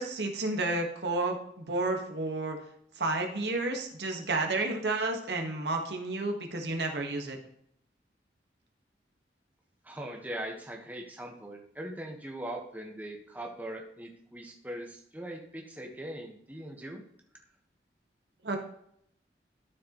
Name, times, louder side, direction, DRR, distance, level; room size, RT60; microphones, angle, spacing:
voice 1, 0.0-1.4 1.7-2.6 3.0-7.4 18.4-18.6, right 2 dB, 75° right, 3 dB, 1.4 m, -31 dB
voice 2, 9.8-17.0, right 1 dB, 10° right, 0 dB, 1.2 m, -41 dB
12.5 x 4.8 x 3.0 m, 0.70 s
head